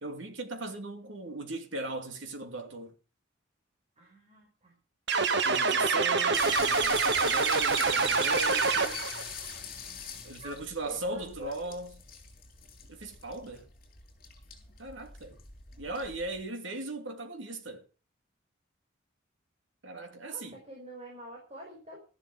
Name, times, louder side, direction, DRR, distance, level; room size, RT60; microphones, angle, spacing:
voice 1, 0.0-2.9 5.4-9.0 10.2-12.0 12.9-13.7 14.8-15.4 15.8-17.8 19.8-20.6, right 2 dB, 80° right, 2.7 m, -38 dB
voice 2, 4.0-4.7 10.4-10.6 10.8-11.8 20.3-22.0, right 1 dB, 35° right, 5.5 m, -47 dB
sound 1, 5.1-9.2, right 4 dB, 60° right, 1.4 m, -26 dB
sound 2, 6.3-16.4, left 6 dB, 50° left, 7.1 m, -42 dB
14.0 x 11.5 x 6.1 m
head